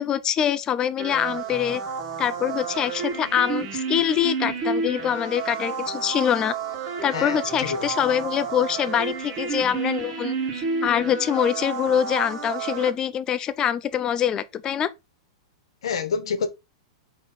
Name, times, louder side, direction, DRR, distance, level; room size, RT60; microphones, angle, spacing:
voice 1, 0.0-1.8 2.2-6.5 7.0-14.9, left 9 dB, 25° left, 0.4 m, -24 dB
sound 1, 1.0-12.9, right 5 dB, 45° right, 1.5 m, -30 dB
voice 2, 7.1-7.9 15.8-16.5, left 6 dB, 85° left, 0.9 m, -28 dB
4.0 x 3.1 x 4.2 m
hypercardioid pair, 135°, 3 cm